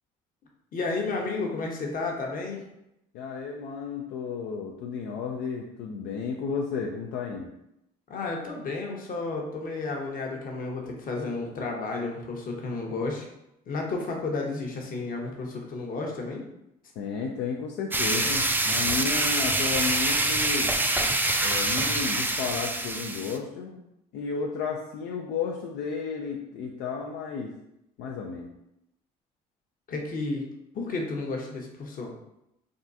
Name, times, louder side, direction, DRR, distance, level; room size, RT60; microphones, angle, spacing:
voice 1, 0.7-2.6 8.1-13.3 13.6-16.4 29.9-30.4 30.7-32.1, left 3 dB, 50° left, 0 dB, 0.8 m, -32 dB
voice 2, 3.1-7.5 17.0-20.7 21.4-23.8 24.1-27.5 28.0-28.5, left 5 dB, 75° left, 0 dB, 0.4 m, -33 dB
sound 1, 17.9-23.4, right 2 dB, 10° right, 0.3 m, -25 dB
3.6 x 2.3 x 2.6 m, 0.83 s
supercardioid pair, 70°, 18 cm